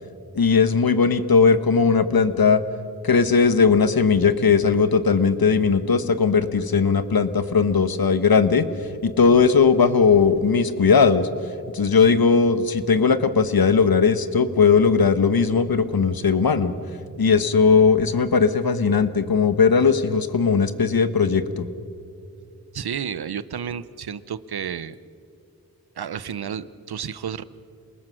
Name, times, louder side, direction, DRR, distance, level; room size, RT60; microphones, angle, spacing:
voice 1, 0.3-2.6 3.0-8.7 9.0-11.3 11.7-16.7 17.2-21.7, left 5 dB, 70° left, 11 dB, 1.3 m, -18 dB
voice 2, 22.7-25.0 26.0-27.4, right 8 dB, 85° right, 16 dB, 0.8 m, -31 dB
27.5 x 20.0 x 6.4 m, 2.4 s
cardioid pair, 45°, 37 cm